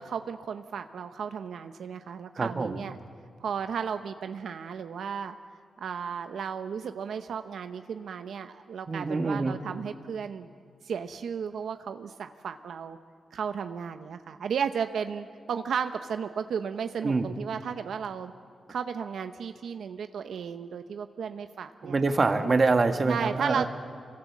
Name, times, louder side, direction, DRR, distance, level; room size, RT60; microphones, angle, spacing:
voice 1, 0.0-3.0 3.4-5.4 5.8-10.5 10.8-13.0 13.3-18.3 18.7-22.0 23.1-23.7, right 7 dB, 80° right, 8 dB, 0.8 m, -34 dB
voice 2, 2.4-2.8 8.9-9.6 17.0-17.3 21.8-23.7, right 3 dB, 35° right, 7 dB, 1.6 m, -25 dB
26.5 x 23.5 x 7.4 m, 2.2 s
wide cardioid pair, 110°, 0 cm